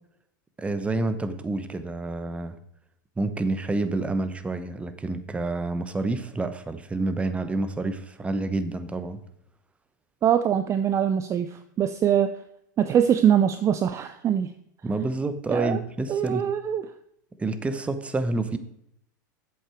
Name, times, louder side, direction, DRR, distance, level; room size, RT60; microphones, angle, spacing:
voice 1, 0.6-2.5 3.2-9.2 14.8-16.4 17.4-18.6, right 2 dB, 10° right, 11 dB, 0.9 m, -28 dB
voice 2, 10.2-12.3 12.8-14.5 15.5-15.8 16.1-16.8, right 9 dB, 30° right, 11 dB, 0.5 m, -23 dB
8.2 x 7.4 x 4.5 m, 0.74 s
hypercardioid pair, 105°, 11 cm